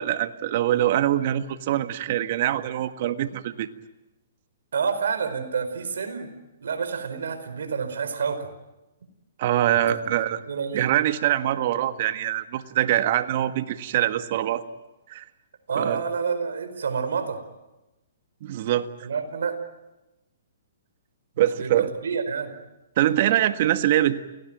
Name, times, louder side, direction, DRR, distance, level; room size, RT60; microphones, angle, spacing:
voice 1, 0.0-3.7 9.4-10.4 10.7-14.6 15.1-15.2 15.7-16.0 18.4-19.1 21.4-21.9 23.0-24.2, right 12 dB, 50° right, 10 dB, 1.7 m, -24 dB
voice 2, 4.7-6.3 6.6-8.5 9.9-10.0 10.5-10.9 15.7-17.4 19.0-19.6 21.6-22.5, right 6 dB, 80° right, 8 dB, 4.9 m, -28 dB
29.0 x 19.0 x 9.1 m, 1.0 s
hypercardioid pair, 140°, 0 cm